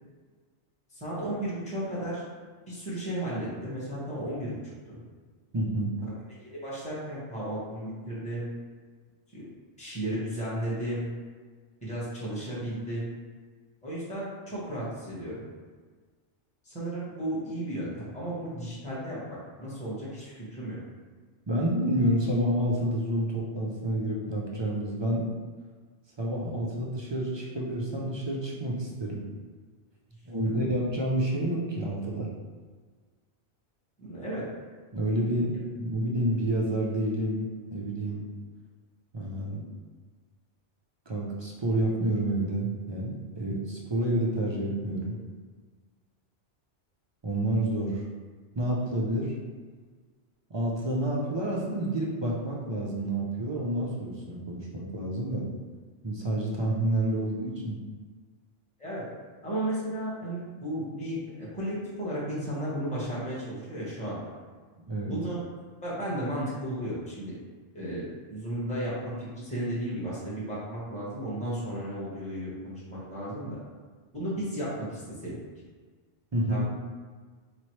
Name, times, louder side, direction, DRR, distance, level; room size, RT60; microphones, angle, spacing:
voice 1, 0.9-2.2 2.7-4.6 4.9-5.0 6.4-8.5 9.3-9.4 9.8-11.1 11.8-13.1 13.8-15.4 16.6-20.8 30.4-30.5 34.0-34.5 58.8-59.0 59.4-64.2 65.0-65.4 65.8-67.4 67.7-73.6 74.1-75.4 76.5-76.6, right 1 dB, 5° left, -8 dB, 0.9 m, -34 dB
voice 2, 5.5-5.9 21.5-25.2 26.2-29.2 30.3-32.3 34.9-38.3 39.1-39.6 41.1-45.2 47.2-48.0 48.6-49.3 50.5-55.5 56.0-57.8 64.9-65.1 76.3-76.6, right 1 dB, 45° right, -3 dB, 0.3 m, -29 dB
4.1 x 3.0 x 3.1 m, 1.5 s
omnidirectional pair, 1.2 m